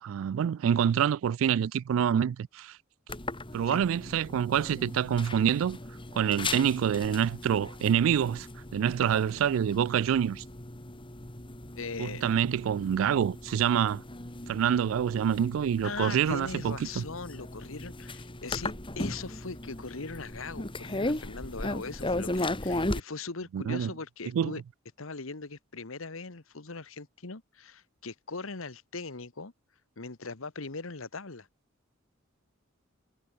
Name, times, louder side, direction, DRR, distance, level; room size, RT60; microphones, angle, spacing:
voice 1, 0.0-2.8 3.5-5.8 6.1-8.5 8.7-10.4 12.0-14.0 14.5-17.0 23.5-23.9 24.3-24.5, right 8 dB, 70° right, 0.3 m, -26 dB
sound 1, 3.1-23.0, left 2 dB, 25° left, 2.4 m, -37 dB
voice 2, 11.8-12.3 15.8-24.6 25.0-29.5 30.0-31.5, left 4 dB, 75° left, 1.5 m, -40 dB
head